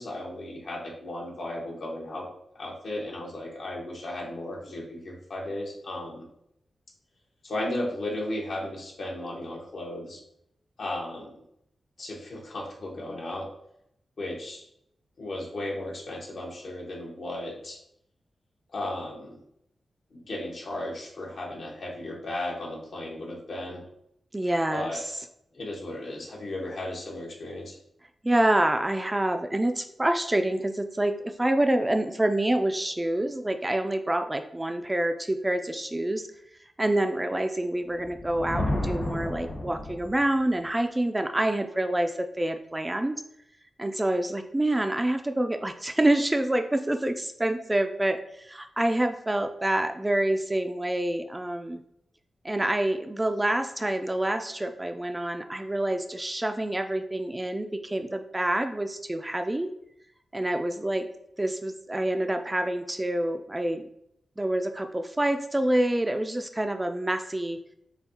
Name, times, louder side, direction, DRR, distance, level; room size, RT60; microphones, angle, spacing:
voice 1, 0.0-6.3 7.4-10.2 10.8-11.4 12.0-13.5 14.2-14.7 15.2-17.8 18.7-19.4 20.1-23.9 24.7-25.0 25.5-27.8, left 1 dB, 70° left, -2 dB, 1.3 m, -35 dB
voice 2, 24.3-25.0 28.2-36.3 36.8-43.2 43.8-51.8 52.4-59.7 60.3-61.1 61.4-63.9 64.4-67.6, right 1 dB, 20° right, 7 dB, 0.4 m, -27 dB
Thunder, 38.0-40.4, left 1 dB, 50° left, 1.5 m, -32 dB
6.8 x 2.4 x 2.8 m, 0.75 s
cardioid pair, 80°, 0 cm